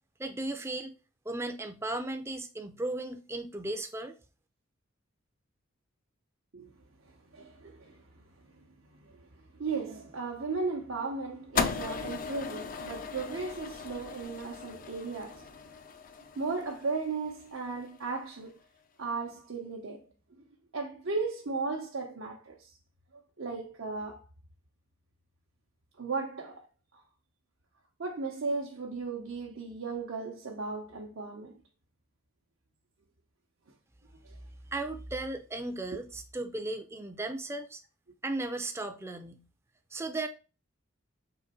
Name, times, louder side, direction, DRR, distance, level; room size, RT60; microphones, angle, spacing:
voice 1, 0.2-0.9 1.3-4.1 34.7-37.8 38.2-39.4 39.9-40.3, right 2 dB, 15° right, 0.5 m, -36 dB
voice 2, 7.3-8.0 9.0-9.2 9.5-15.5 16.4-18.5 19.0-20.0 20.7-22.7 23.4-24.2 26.0-26.6 28.0-31.5, right 4 dB, 75° right, 0.8 m, -36 dB
sound 1, 11.6-17.9, left 5 dB, 40° left, 0.4 m, -37 dB
3.9 x 3.0 x 4.2 m
head